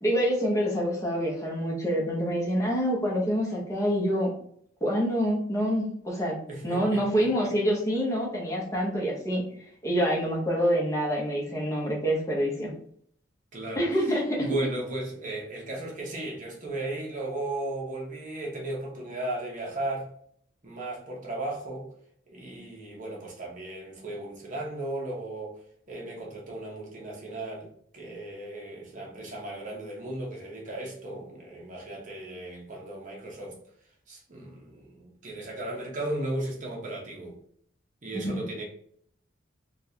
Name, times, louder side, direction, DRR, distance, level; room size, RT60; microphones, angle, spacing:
voice 1, 0.0-4.3 4.8-6.4 6.6-9.4 9.8-12.7 13.8-14.5 38.1-38.3, equal, 15° left, -3 dB, 0.8 m, -26 dB
voice 2, 6.5-7.5 13.5-20.1 20.6-21.9 22.3-25.6 25.9-33.6 34.1-37.3 38.0-38.6, right 1 dB, 40° right, -2 dB, 1.0 m, -36 dB
3.7 x 2.4 x 2.8 m, 0.63 s
head